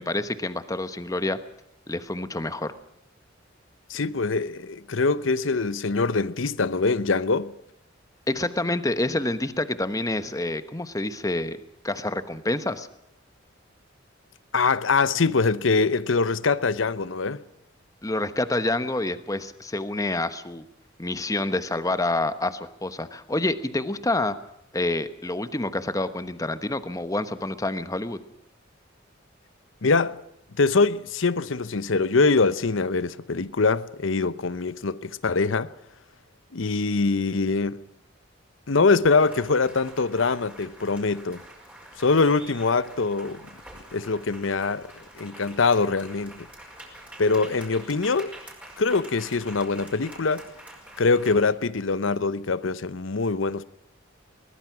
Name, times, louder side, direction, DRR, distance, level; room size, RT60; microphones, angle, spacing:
voice 1, 0.0-1.4 1.9-2.7 8.3-11.6 11.8-12.9 18.0-20.7 21.0-24.4 24.7-28.2, left 2 dB, 20° left, 1.1 m, -27 dB
voice 2, 3.9-7.5 14.5-17.4 29.8-30.2 30.6-35.7 36.5-37.8 38.7-41.4 42.0-43.4 43.9-44.9 45.1-46.5 47.2-48.3 48.8-50.5 51.0-53.7, left 4 dB, 80° left, 0.8 m, -23 dB
sound 1, 39.1-51.5, right 1 dB, 5° right, 5.2 m, -46 dB
22.0 x 20.0 x 6.1 m
head